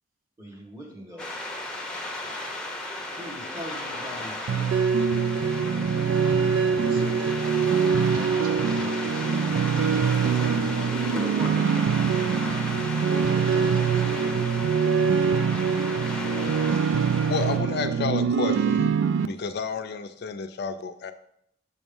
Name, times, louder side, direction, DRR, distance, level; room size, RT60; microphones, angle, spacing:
voice 1, 0.4-1.3 3.2-4.7 11.1-11.6, equal, 15° right, -1 dB, 1.5 m, -38 dB
sound 1, 1.2-17.6, left 1 dB, 5° left, 0.8 m, -35 dB
sound 2, 4.5-19.3, right 6 dB, 70° right, 0.3 m, -24 dB
voice 2, 6.8-11.4 13.1-14.5 16.3-16.7 17.2-17.7, right 1 dB, 45° right, 4 dB, 0.7 m, -41 dB
voice 3, 17.3-18.9 19.2-21.1, left 5 dB, 55° left, 9 dB, 0.4 m, -30 dB
6.9 x 3.0 x 5.3 m, 0.73 s
head